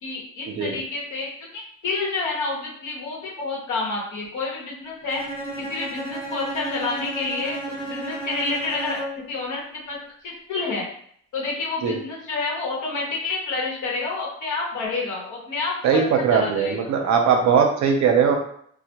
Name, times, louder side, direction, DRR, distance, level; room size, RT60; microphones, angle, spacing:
voice 1, 0.0-5.2 5.6-7.6 7.9-9.0 9.3-10.9 11.3-16.9, left 3 dB, 75° left, -3 dB, 0.9 m, -29 dB
Bowed string instrument, 5.1-9.3, right 2 dB, 15° left, 0.8 m, -33 dB
voice 2, 15.8-18.4, right 6 dB, 70° right, 3 dB, 0.6 m, -19 dB
2.1 x 2.1 x 2.8 m, 0.65 s
cardioid pair, 90°, 30 cm